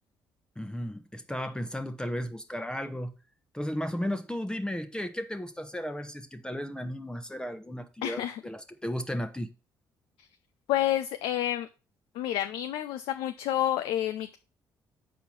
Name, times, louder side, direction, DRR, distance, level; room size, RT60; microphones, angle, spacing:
voice 1, 0.6-3.1 3.5-9.5, equal, 10° left, 0.9 m, -34 dB
voice 2, 8.0-8.4 10.7-11.7 12.2-14.4, left 12 dB, 75° left, 0.4 m, -29 dB
6.9 x 4.6 x 5.9 m
hypercardioid pair, 55°, 9 cm